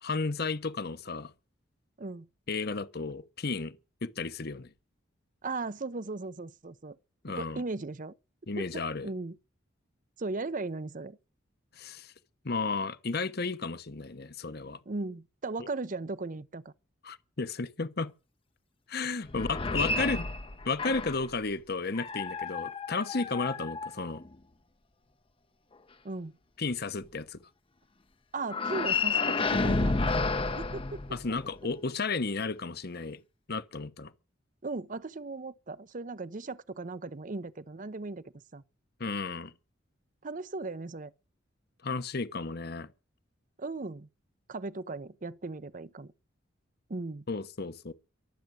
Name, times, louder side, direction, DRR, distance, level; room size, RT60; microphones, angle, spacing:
voice 1, 0.0-1.3 2.5-3.8 4.0-4.7 7.2-7.6 8.5-9.1 11.8-12.1 12.4-14.8 17.0-18.1 18.9-20.3 20.6-24.2 26.6-27.4 31.1-33.2 33.5-34.1 39.0-39.5 41.8-42.9 47.3-47.9, left 4 dB, 55° left, 1.1 m, -33 dB
voice 2, 5.4-7.0 7.4-8.1 8.6-9.4 10.2-11.2 14.9-16.7 26.0-26.3 28.3-30.0 30.6-31.0 34.6-38.2 38.5-38.6 40.2-41.1 43.6-44.1 44.5-46.1 46.9-47.2, right 3 dB, 45° right, 0.7 m, -37 dB
sound 1, 19.3-21.3 21.9-24.4 28.5-31.6, left 3 dB, 30° left, 0.7 m, -31 dB
23.5 x 8.1 x 6.3 m
head